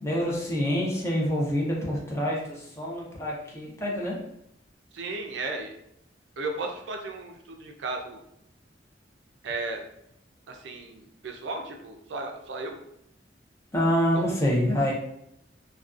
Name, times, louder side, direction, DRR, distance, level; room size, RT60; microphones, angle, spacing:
voice 1, 0.0-4.2 13.7-14.9, equal, 15° left, -3 dB, 0.6 m, -26 dB
voice 2, 4.9-5.7 6.4-8.2 9.4-9.8 10.5-12.8 14.1-14.4, right 3 dB, 75° right, 3 dB, 0.4 m, -35 dB
2.5 x 2.2 x 2.4 m, 0.77 s
head